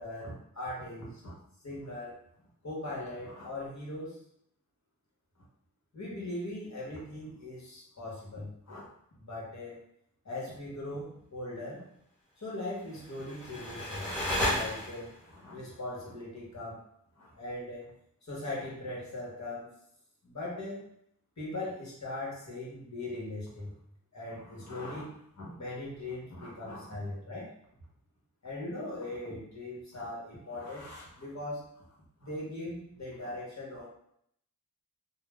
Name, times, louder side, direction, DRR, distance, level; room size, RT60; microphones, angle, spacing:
voice 1, 0.0-1.4 1.6-4.2 5.4-5.5 5.9-8.9 9.2-9.9 10.2-11.9 12.4-14.1 14.5-16.8 17.1-17.9 18.2-19.7 20.2-20.8 21.4-23.7 24.1-27.5 28.4-31.8 32.2-33.9, left 1 dB, 50° left, -4 dB, 1.2 m, -40 dB
sound 1, 12.9-15.3, left 1 dB, 5° left, 1.4 m, -33 dB
2.6 x 2.0 x 3.4 m, 0.70 s
wide cardioid pair, 65°, 37 cm